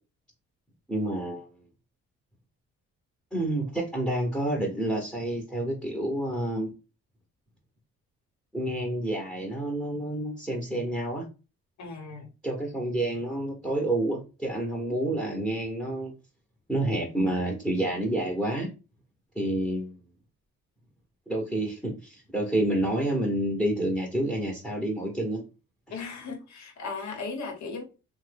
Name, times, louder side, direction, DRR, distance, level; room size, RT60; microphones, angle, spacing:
voice 1, 0.9-1.5 3.3-6.7 8.5-11.3 12.4-16.1 16.7-18.7 19.3-19.9 21.3-25.4, right 1 dB, ahead, 0 dB, 0.9 m, -29 dB
voice 2, 11.8-12.3 25.9-27.8, left 4 dB, 65° left, 4 dB, 1.1 m, -37 dB
2.9 x 2.2 x 3.3 m, 0.30 s
cardioid pair, 90°, 30 cm